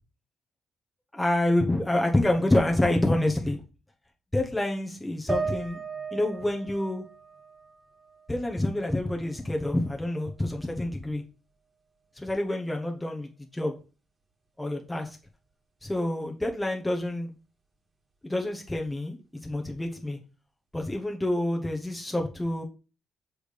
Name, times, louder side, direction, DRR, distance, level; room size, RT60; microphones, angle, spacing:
voice 1, 1.1-3.6 4.3-5.8 6.1-7.0 8.3-11.2 12.2-13.7 14.6-15.2 15.8-17.3 18.2-19.2 19.4-20.2 20.7-22.6, left 1 dB, 10° left, 1 dB, 1.0 m, -27 dB
sound 1, 5.3-8.7 9.1-10.1, right 4 dB, 25° right, 1.7 m, -37 dB
6.2 x 3.4 x 5.2 m, 0.35 s
cardioid pair, 90°, 0 cm